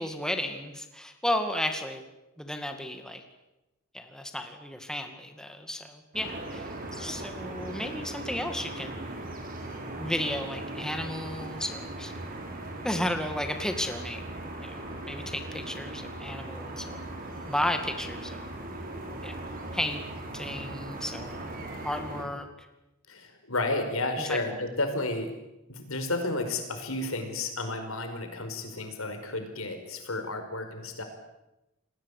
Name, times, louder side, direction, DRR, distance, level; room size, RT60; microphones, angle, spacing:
voice 1, 0.0-2.0 2.4-3.2 3.9-9.0 10.0-12.1 12.8-14.3 14.6-14.8 15.1-17.1 17.5-18.5 19.2-19.5 19.7-20.0 20.3-21.5 21.8-22.5 24.2-24.6, left 1 dB, 5° left, 6 dB, 2.3 m, -33 dB
sound 1, 6.1-22.2, right 1 dB, 45° right, 5.8 m, -39 dB
voice 2, 23.1-25.3 25.7-31.0, left 2 dB, 90° left, 6 dB, 5.1 m, -32 dB
28.5 x 20.0 x 8.5 m, 0.96 s
head